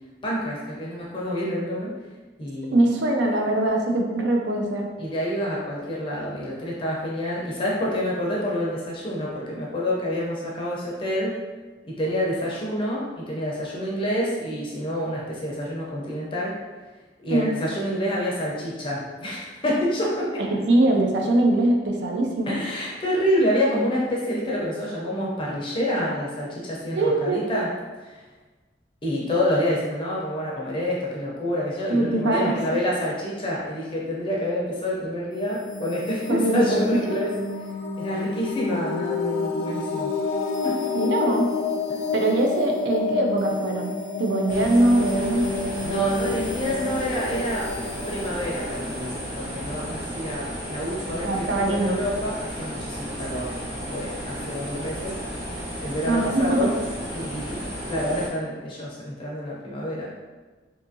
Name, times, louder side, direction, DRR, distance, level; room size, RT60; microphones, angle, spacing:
voice 1, 0.2-1.9 2.4-2.8 5.0-11.3 11.8-16.5 17.2-20.4 22.5-27.7 29.0-37.3 38.0-40.1 40.6-40.8 41.9-42.0 45.8-47.7 48.1-55.2 55.8-56.8 57.1-60.1, equal, 30° left, -5 dB, 0.5 m, -28 dB
voice 2, 2.7-4.9 17.3-17.5 20.5-22.6 27.0-27.4 31.9-32.6 36.3-36.8 40.9-41.5 42.1-43.9 44.2-45.5 51.2-52.0 56.1-56.7, right 2 dB, 80° right, 1 dB, 0.5 m, -22 dB
sound 1, 35.3-50.0, left 4 dB, 90° left, 0.3 m, -29 dB
sound 2, 44.5-58.3, equal, 60° right, 1.1 m, -33 dB
2.7 x 2.4 x 2.6 m, 1.3 s
head